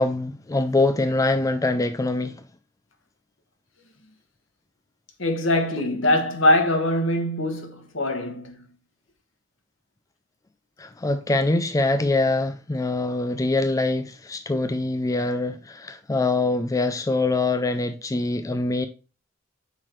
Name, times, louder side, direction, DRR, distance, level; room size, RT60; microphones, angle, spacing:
voice 1, 0.0-2.4 10.8-18.9, left 2 dB, 15° left, 0.4 m, -24 dB
voice 2, 5.2-8.6, left 1 dB, 70° left, 1.4 m, -22 dB
5.8 x 4.7 x 4.4 m
head